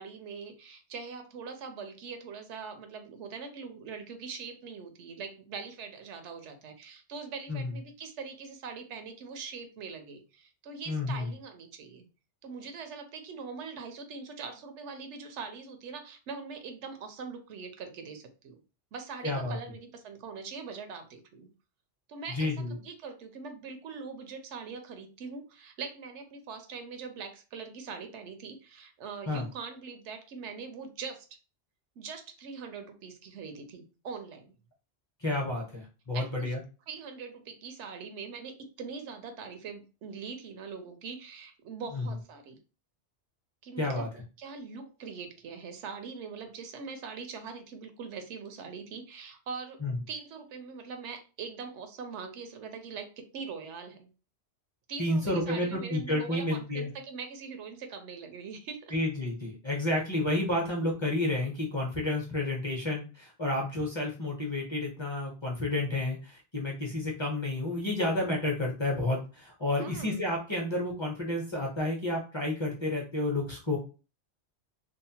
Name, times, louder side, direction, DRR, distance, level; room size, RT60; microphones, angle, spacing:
voice 1, 0.0-12.1 12.4-18.6 18.9-21.5 22.1-31.4 32.0-34.5 36.1-36.6 36.9-42.6 43.6-44.1 44.4-49.8 50.1-54.1 54.9-58.9 69.8-70.2, right 5 dB, 90° right, 7 dB, 0.9 m, -42 dB
voice 2, 10.9-11.3 19.2-19.6 22.3-22.7 29.3-29.5 35.2-36.6 41.9-42.1 43.8-44.1 49.8-50.0 55.0-56.9 58.9-73.8, left 2 dB, 30° left, -1 dB, 0.6 m, -30 dB
2.7 x 2.0 x 2.7 m, 0.34 s
omnidirectional pair, 1.2 m